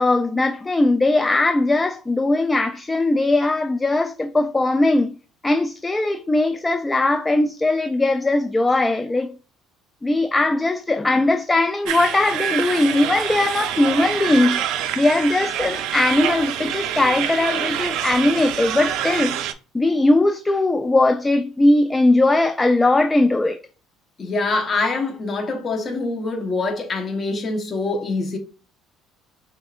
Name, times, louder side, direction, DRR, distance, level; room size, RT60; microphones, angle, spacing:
voice 1, 0.0-5.1 5.4-9.4 10.0-14.6 15.0-19.4 19.7-23.6, left 2 dB, 15° left, 0.3 m, -19 dB
sound 1, 11.8-19.5, right 10 dB, 70° right, 0.4 m, -26 dB
voice 2, 24.2-28.4, left 3 dB, 35° left, 1.0 m, -24 dB
6.1 x 2.5 x 2.4 m
cardioid pair, 120°, 0 cm